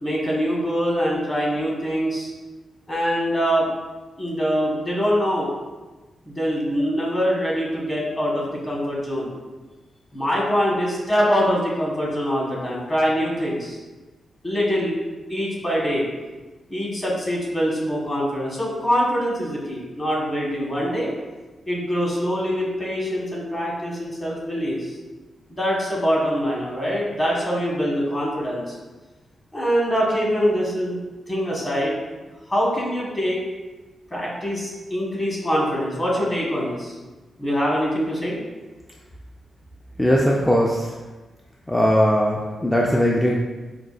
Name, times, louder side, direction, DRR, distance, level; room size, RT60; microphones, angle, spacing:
voice 1, 0.0-2.3 2.9-3.7 4.2-5.5 6.2-9.3 10.1-13.8 14.4-15.0 15.3-16.1 16.7-21.1 21.7-24.9 25.5-28.7 29.5-31.0 31.3-32.0 32.5-33.4 34.1-36.9 37.4-38.4, equal, 25° left, -4 dB, 1.2 m, -24 dB
voice 2, 40.0-40.9 41.7-43.4, equal, 10° left, -2 dB, 0.3 m, -19 dB
4.9 x 2.3 x 2.4 m, 1.2 s
cardioid pair, 90°, 0 cm